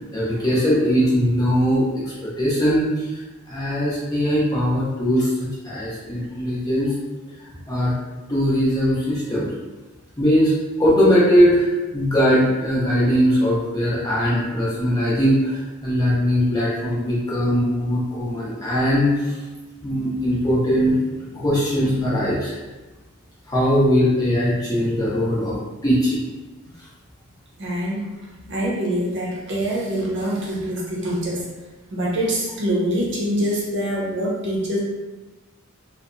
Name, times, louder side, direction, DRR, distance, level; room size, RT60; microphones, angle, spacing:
voice 1, 0.1-2.9 3.5-5.3 5.6-6.9 7.7-7.9 8.3-9.5 10.2-10.5 10.8-11.7 11.9-19.1 19.8-21.0 21.3-22.5 23.5-25.6 25.8-26.2, equal, 15° left, -8 dB, 0.5 m, -20 dB
voice 2, 27.6-28.1 28.5-31.4 31.9-34.8, equal, 50° right, -5 dB, 0.6 m, -24 dB
2.7 x 2.0 x 2.5 m, 1.2 s
head